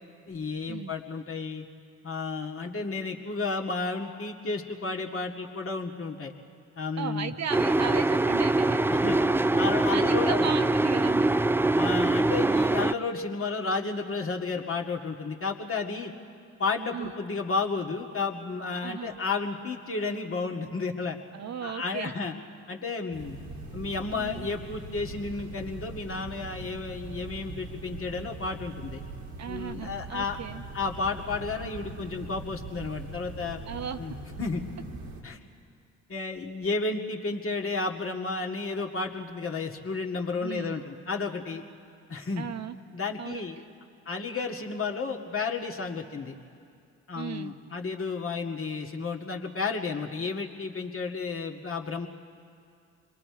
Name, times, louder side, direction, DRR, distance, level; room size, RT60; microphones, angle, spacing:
voice 1, 0.3-1.7 2.0-6.3 6.8-7.3 8.9-9.2 9.6-10.5 11.8-16.1 16.6-21.2 21.6-22.3 22.7-23.4 23.7-29.0 29.5-30.4 30.7-33.6 34.0-34.6 35.2-35.4 36.1-41.6 42.1-42.5 42.9-43.6 44.1-46.3 47.1-52.1, left 4 dB, 35° left, 1 dB, 2.0 m, -32 dB
voice 2, 7.0-8.8 9.9-11.3 16.9-17.1 18.8-19.2 21.3-22.1 24.1-24.5 29.4-30.6 33.7-34.0 40.4-40.8 42.4-42.8 43.2-43.5 47.1-47.5, right 8 dB, 50° right, 8 dB, 0.9 m, -36 dB
sound 1, 7.5-12.9, right 2 dB, 5° right, 0.4 m, -23 dB
sound 2, 23.1-35.2, right 2 dB, 85° right, 2.2 m, -41 dB
26.5 x 22.0 x 4.8 m, 2.4 s
hypercardioid pair, 50°, 36 cm